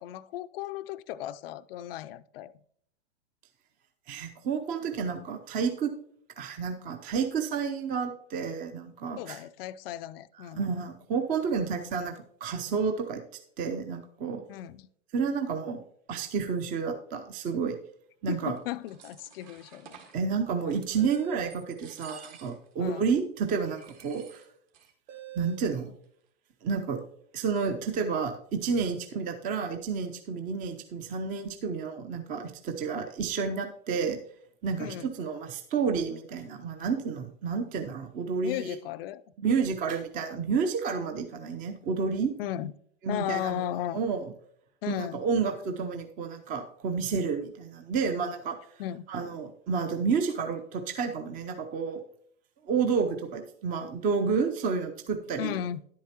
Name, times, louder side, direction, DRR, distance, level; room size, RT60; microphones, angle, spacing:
voice 1, 0.0-2.5 9.2-10.7 14.5-14.9 18.3-19.9 20.6-20.8 22.8-23.1 34.8-35.1 38.4-39.2 42.4-42.7 43.1-44.0 44.8-45.2 48.8-49.1 55.4-55.8, left 12 dB, 50° left, 0.4 m, -35 dB
voice 2, 4.1-5.9 6.4-9.4 10.5-13.2 13.6-14.4 15.1-15.8 16.1-17.8 18.2-18.6 20.1-24.4 25.4-25.9 26.6-27.0 27.3-34.2 34.6-38.7 39.4-42.3 43.0-43.6 43.9-44.3 44.9-48.6 49.1-52.0 52.6-55.6, right 5 dB, 20° right, 0.6 m, -30 dB
sound 1, 18.6-20.2 20.7-21.2 21.5-22.7 23.0-23.1 23.6-24.9 25.2-25.3 25.5-26.0, right 6 dB, 45° right, 1.8 m, -52 dB
sound 2, 20.7-21.6 23.9-24.0 25.1-25.7, right 13 dB, 75° right, 1.0 m, -45 dB
10.5 x 8.4 x 2.9 m
hypercardioid pair, 130°, 37 cm